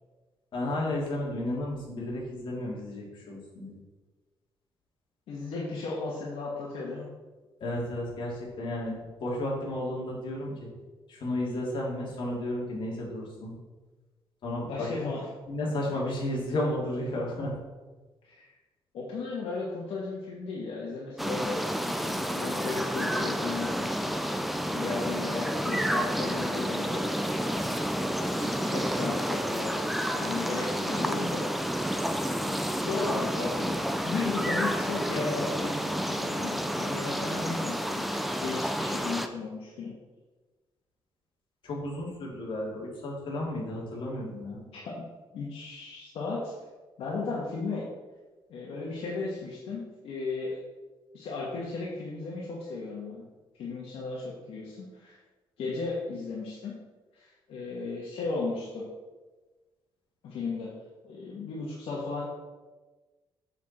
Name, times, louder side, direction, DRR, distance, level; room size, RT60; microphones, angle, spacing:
voice 1, 0.5-3.8 7.6-10.7 11.1-13.5 14.4-14.9 15.5-17.5 41.6-44.6, left 1 dB, 60° left, -3 dB, 2.7 m, -33 dB
voice 2, 5.3-7.1 14.6-15.3 18.2-18.6 18.9-24.3 24.6-27.5 28.2-29.8 30.1-31.4 32.8-33.8 34.0-39.9 44.7-45.1 45.3-46.5 47.0-47.9 48.5-50.6 51.1-53.3 53.6-55.2 55.6-56.7 57.1-58.9 60.2-60.7 61.0-62.2, left 3 dB, 85° left, -5 dB, 1.6 m, -35 dB
sound 1, 21.2-39.3, equal, ahead, 0.5 m, -30 dB
7.4 x 7.1 x 4.3 m, 1.2 s
cardioid pair, 140°, 9 cm